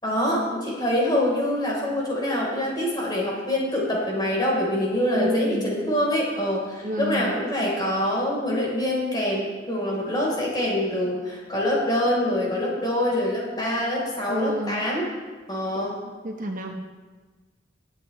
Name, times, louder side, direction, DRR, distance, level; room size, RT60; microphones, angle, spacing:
voice 1, 0.0-15.1 15.5-16.0, left 1 dB, 25° left, -4 dB, 3.9 m, -25 dB
voice 2, 5.1-5.7 6.8-7.3 14.3-14.8 16.2-16.7, right 1 dB, 45° right, 2 dB, 1.1 m, -29 dB
22.5 x 8.4 x 3.2 m, 1.3 s
head